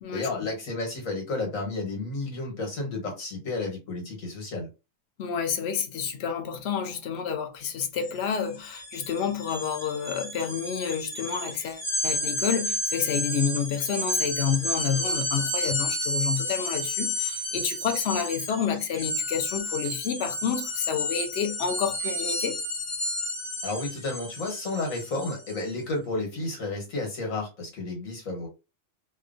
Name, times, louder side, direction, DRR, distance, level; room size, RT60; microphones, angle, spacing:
voice 1, 0.1-4.7 23.6-28.5, left 2 dB, 80° left, 1.5 m, -32 dB
voice 2, 5.2-22.6, left 7 dB, 65° left, 0.7 m, -29 dB
sound 1, 8.0-8.1 8.4-25.7, left 1 dB, 15° left, 0.6 m, -31 dB
2.9 x 2.2 x 2.4 m
omnidirectional pair, 1.4 m